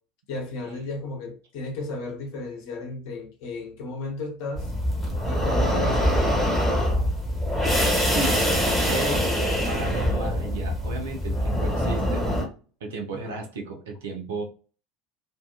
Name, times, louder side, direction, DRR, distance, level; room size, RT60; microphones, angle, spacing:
voice 1, 0.3-4.7 5.3-6.8 13.1-13.4, left 2 dB, 55° left, 0.8 m, -34 dB
sound 1, 4.6-12.4, equal, 10° right, 1.1 m, -24 dB
voice 2, 8.0-8.5 8.9-9.3 9.7-12.2 12.8-14.4, right 3 dB, 65° right, 0.5 m, -33 dB
2.6 x 2.3 x 2.2 m
figure-of-eight pair, 70°, 0 cm